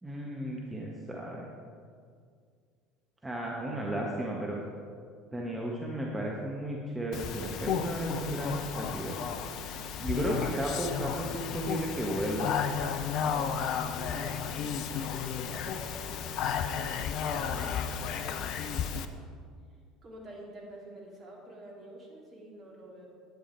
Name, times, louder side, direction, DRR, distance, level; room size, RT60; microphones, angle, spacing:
voice 1, 0.0-1.5 3.2-4.6 5.3-9.2 10.0-12.6, right 1 dB, 15° right, -2 dB, 1.4 m, -34 dB
Speech, 7.1-19.1, left 7 dB, 55° left, 0.6 m, -33 dB
voice 2, 10.0-10.5 13.2-18.6 20.0-23.1, right 1 dB, 40° right, -2 dB, 2.9 m, -48 dB
10.5 x 9.6 x 4.6 m, 2.1 s
figure-of-eight pair, 65°, 0 cm